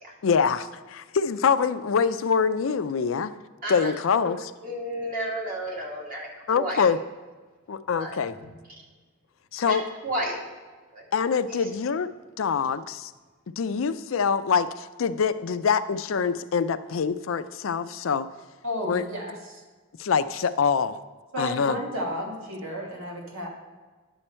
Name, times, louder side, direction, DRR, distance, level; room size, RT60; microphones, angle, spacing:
voice 1, 0.2-3.3 3.7-4.4 6.5-7.0 7.7-8.4 9.5-9.9 11.1-12.1 12.4-13.1 13.6-18.3 18.9-19.0 20.0-21.0 21.4-21.8, left 6 dB, 75° left, 13 dB, 0.4 m, -25 dB
voice 2, 3.6-3.9 4.2-4.3 4.6-6.3 6.5-6.8 7.9-8.5 9.6-9.8 10.0-10.4 10.9-11.0 11.5-11.7, equal, 45° right, -2 dB, 2.0 m, -32 dB
voice 3, 18.6-19.6 21.3-23.5, equal, 85° right, -1 dB, 2.0 m, -32 dB
9.9 x 7.1 x 4.4 m, 1.4 s
head